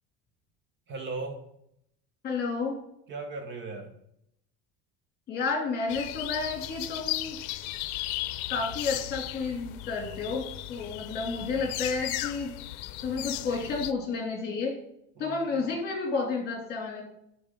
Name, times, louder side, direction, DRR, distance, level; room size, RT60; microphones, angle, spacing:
voice 1, 0.9-1.4 3.1-3.9 15.2-15.6, right 3 dB, 40° right, 5 dB, 1.1 m, -37 dB
voice 2, 2.2-2.8 5.3-7.4 8.5-12.5 13.0-14.8 15.2-17.0, left 4 dB, 35° left, 0 dB, 2.6 m, -31 dB
sound 1, 5.9-13.9, left 16 dB, 80° left, 0.6 m, -36 dB
12.0 x 4.6 x 3.7 m, 0.75 s
cardioid pair, 160°, 30 cm